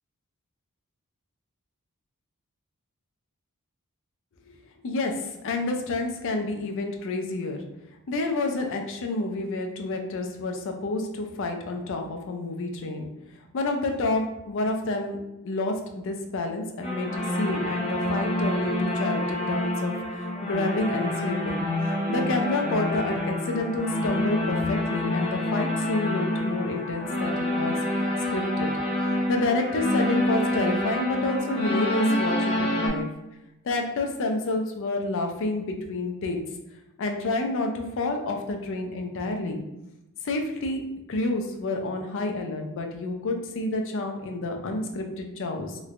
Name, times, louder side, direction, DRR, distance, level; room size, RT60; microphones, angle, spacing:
voice 1, 5.4-7.6 8.1-13.1 13.5-15.2 15.4-21.7 22.1-27.8 28.3-28.7 29.3-33.1 33.6-36.4 37.0-39.6 40.2-40.8 41.1-45.8, left 2 dB, 60° left, 4 dB, 0.5 m, -29 dB
sound 1, 16.8-32.9, left 1 dB, 25° left, 0.9 m, -27 dB
3.1 x 3.1 x 2.4 m, 0.94 s
head